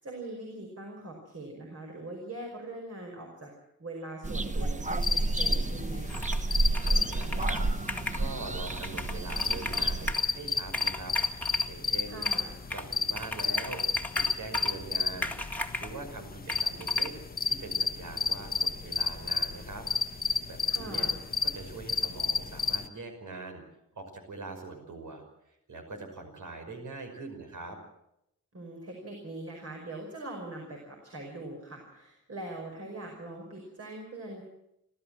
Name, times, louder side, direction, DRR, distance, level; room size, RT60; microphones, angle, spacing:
voice 1, 0.0-3.5 3.8-6.3 12.1-12.6 20.7-21.2 28.5-34.4, right 2 dB, 50° right, 0 dB, 5.3 m, -42 dB
sound 1, 4.2-10.1, right 2 dB, 25° right, 1.0 m, -30 dB
sound 2, 4.9-22.9, left 4 dB, 30° left, 1.2 m, -32 dB
Computer keyboard, 6.1-6.5 6.7-8.2 8.7-10.3 10.6-11.7 12.2-12.9 13.2-14.8 15.2-16.0 16.5-17.1, left 1 dB, 5° left, 1.9 m, -36 dB
voice 2, 6.8-12.2 12.7-13.8 14.2-17.1 17.5-19.9 20.5-21.1 21.4-23.6 23.9-27.8, right 3 dB, 75° right, 4 dB, 5.7 m, -43 dB
30.0 x 13.0 x 7.7 m, 0.83 s
wide cardioid pair, 115°, 30 cm